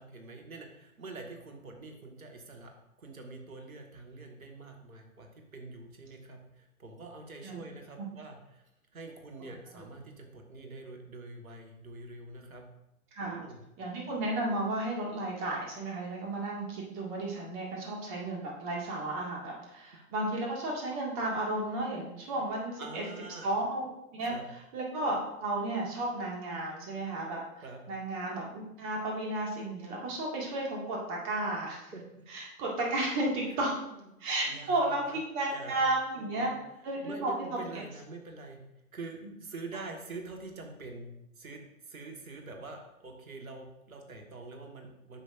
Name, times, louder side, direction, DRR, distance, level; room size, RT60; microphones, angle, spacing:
voice 1, 0.0-8.6 8.9-12.6 13.2-13.6 22.8-23.5 24.2-24.4 27.6-27.8 31.9-32.3 33.5-35.2 35.5-35.8 36.1-36.6 37.0-38.6 38.9-45.2, right 3 dB, 70° right, 3 dB, 1.6 m, -45 dB
voice 2, 13.8-23.0 23.4-23.9 24.1-24.3 24.7-27.4 27.9-31.9 32.3-33.8 34.2-36.5 36.8-37.8, right 2 dB, 30° right, -2 dB, 2.1 m, -33 dB
9.7 x 7.0 x 2.6 m, 0.87 s
figure-of-eight pair, 110°, 43 cm